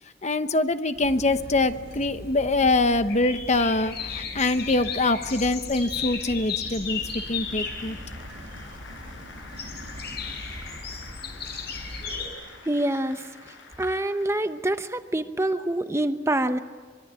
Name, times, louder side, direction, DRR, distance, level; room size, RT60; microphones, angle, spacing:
voice 1, 0.2-7.0 7.3-8.0, left 2 dB, 35° left, 10 dB, 1.0 m, -24 dB
sound 1, 0.9-2.2 3.3-5.0 5.7-11.2, right 1 dB, 80° right, 2.6 m, -48 dB
sound 2, 1.0-12.3, left 5 dB, 60° left, 5.1 m, -36 dB
sound 3, 6.7-14.7, left 4 dB, 80° left, 6.7 m, -47 dB
voice 2, 12.7-13.3 13.8-16.6, right 1 dB, 15° right, 9 dB, 0.8 m, -26 dB
25.0 x 23.0 x 9.0 m, 1.5 s
head